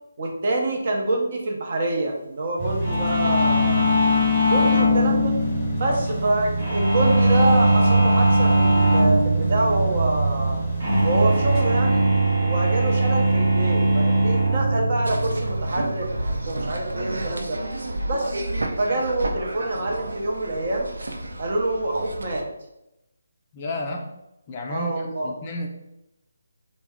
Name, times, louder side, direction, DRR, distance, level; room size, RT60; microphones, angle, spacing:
voice 1, 0.2-3.9 4.5-5.3 5.8-10.6 11.0-12.0 12.4-16.1 16.5-17.6 18.1-18.4 18.8-20.9 21.4-22.4 24.7-25.3, right 2 dB, 50° right, 0 dB, 0.8 m, -26 dB
sound 1, 2.6-11.7, right 3 dB, ahead, 1.1 m, -28 dB
sound 2, 2.8-17.3, right 1 dB, 30° right, 1.1 m, -21 dB
sound 3, 15.0-22.4, right 1 dB, 85° right, 0.5 m, -31 dB
voice 2, 23.5-24.1 24.5-25.7, left 1 dB, 25° left, 1 dB, 0.4 m, -32 dB
3.4 x 2.1 x 3.5 m, 0.88 s
figure-of-eight pair, 165°, 0 cm